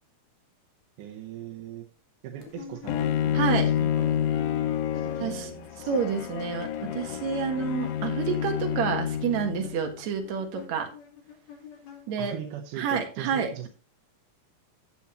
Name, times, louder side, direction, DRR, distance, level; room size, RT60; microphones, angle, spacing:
voice 1, 1.0-1.9 2.2-4.3 4.5-4.6 4.9-5.9 12.2-13.7, right 10 dB, 85° right, 3 dB, 2.4 m, -40 dB
sound 1, 2.4-5.6 5.8-12.5, left 7 dB, 60° left, 2.9 m, -47 dB
Bowed string instrument, 2.9-9.9, left 10 dB, 85° left, 2.2 m, -29 dB
voice 2, 3.3-3.7 5.2-5.5 5.9-10.9 12.1-12.4 12.8-13.7, right 6 dB, 65° right, 4 dB, 2.6 m, -29 dB
12.5 x 7.2 x 3.0 m, 0.36 s
omnidirectional pair, 3.6 m